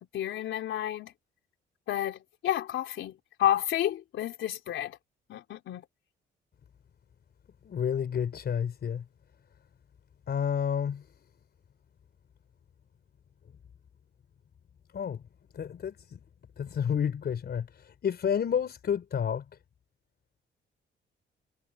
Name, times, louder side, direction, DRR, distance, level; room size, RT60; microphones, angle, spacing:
voice 1, 0.1-1.1 1.9-5.0 5.3-5.8, left 11 dB, 75° left, 3.8 m, -30 dB
voice 2, 7.6-9.0 10.3-11.1 14.9-15.2 15.5-16.2 16.6-19.5, left 8 dB, 55° left, 4.6 m, -30 dB
cardioid pair, 90°, 20 cm